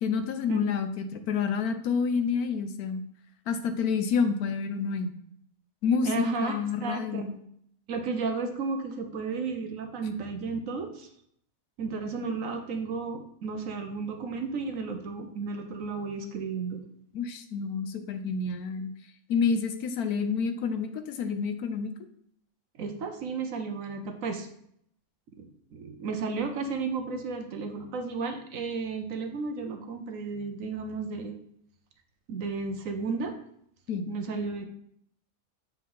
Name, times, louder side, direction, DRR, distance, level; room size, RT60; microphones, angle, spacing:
voice 1, 0.0-3.0 3.5-5.1 5.8-7.4 17.1-18.9 19.3-21.9 33.9-34.1, left 5 dB, 80° left, 9 dB, 1.2 m, -28 dB
voice 2, 6.0-7.3 7.9-11.1 11.8-16.8 22.8-24.5 25.4-31.4 32.3-33.3 34.1-34.7, right 4 dB, 65° right, 6 dB, 1.1 m, -33 dB
7.3 x 4.5 x 3.8 m, 0.70 s
omnidirectional pair, 1.6 m